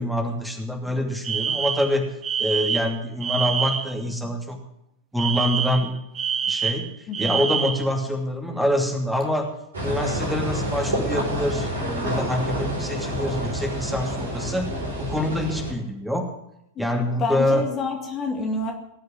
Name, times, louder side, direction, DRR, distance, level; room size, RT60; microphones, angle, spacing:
voice 1, 0.0-2.0 2.4-4.6 5.1-6.0 6.5-6.9 7.2-9.5 9.8-14.6 15.0-16.3 16.8-17.6, left 1 dB, 5° right, 2 dB, 2.7 m, -25 dB
Alarm, 1.2-4.0 5.2-7.9, right 7 dB, 25° right, 1.0 m, -26 dB
voice 2, 7.1-7.4 16.8-16.9 17.2-18.7, left 3 dB, 30° left, 2 dB, 2.1 m, -28 dB
sound 1, 9.7-15.7, equal, 70° right, 4.9 m, -28 dB
18.5 x 6.5 x 9.4 m, 0.79 s
figure-of-eight pair, 90°, 0 cm